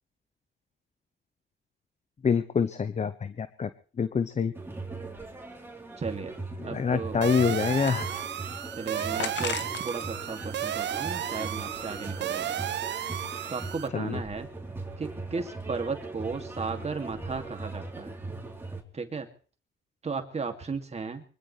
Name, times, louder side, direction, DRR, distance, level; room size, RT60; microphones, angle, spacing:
voice 1, 2.2-3.7 4.0-4.5 6.6-8.1 9.0-9.1 13.9-14.2, left 6 dB, 35° left, 12 dB, 0.9 m, -26 dB
sound 1, 4.5-18.8, right 3 dB, 10° right, 3.6 m, -39 dB
voice 2, 6.0-6.4 6.6-7.2 8.8-12.5 13.5-14.5 15.0-18.2 18.9-19.3 20.0-21.2, right 4 dB, 35° right, 5 dB, 2.4 m, -35 dB
sound 2, 7.2-13.9, right 11 dB, 65° right, 0.8 m, -33 dB
sound 3, 7.7-8.5 9.2-10.1 10.4-11.6, left 8 dB, 65° left, 1.5 m, -38 dB
24.0 x 16.5 x 3.3 m, 0.41 s
cardioid pair, 90°, 20 cm